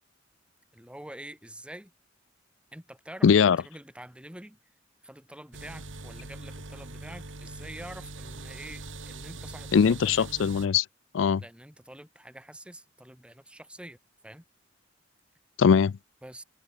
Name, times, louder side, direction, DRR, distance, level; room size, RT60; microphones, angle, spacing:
voice 1, 0.7-1.9 2.7-4.6 5.0-10.0 11.4-14.0 14.2-14.4 16.2-16.4, right 1 dB, 5° right, 3.0 m, -46 dB
voice 2, 3.2-3.6 9.7-10.9 11.1-11.4 15.6-16.0, left 6 dB, 70° left, 0.4 m, -21 dB
sound 1, 5.5-10.7, right 2 dB, 80° right, 3.8 m, -42 dB
head